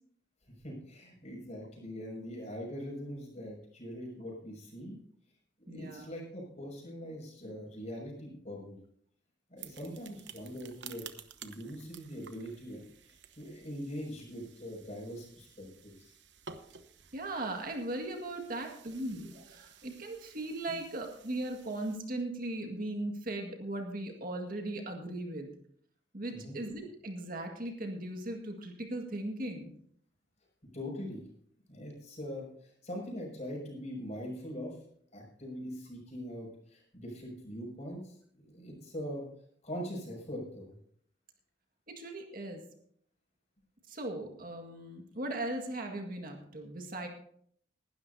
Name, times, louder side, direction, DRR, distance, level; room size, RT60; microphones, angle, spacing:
voice 1, 0.6-5.0 5.7-8.8 9.5-11.1 11.4-16.2 20.7-20.8 26.3-26.6 30.7-31.3 31.7-34.8 35.1-39.2 39.6-40.7, equal, 40° left, -1 dB, 6.2 m, -42 dB
voice 2, 5.7-6.1 17.1-25.6 26.1-29.7 41.9-42.6 43.9-47.1, right 1 dB, 50° right, 3 dB, 1.9 m, -38 dB
sound 1, 9.6-22.0, right 7 dB, 70° right, 1.0 m, -53 dB
20.0 x 12.5 x 2.7 m, 0.63 s
head